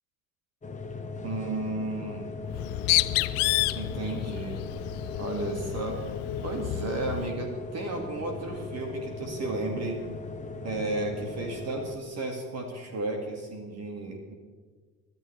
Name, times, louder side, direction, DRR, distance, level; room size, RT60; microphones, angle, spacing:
sound 1, 0.6-12.0, left 3 dB, 15° left, 1.4 m, -39 dB
voice 1, 1.2-2.3 3.7-4.7 5.2-6.0 6.4-10.0 10.6-14.3, right 2 dB, 35° right, 3 dB, 2.3 m, -33 dB
Bird, 2.5-7.3, left 21 dB, 35° left, 0.4 m, -30 dB
24.0 x 13.5 x 3.4 m, 1.5 s
figure-of-eight pair, 65°, 46 cm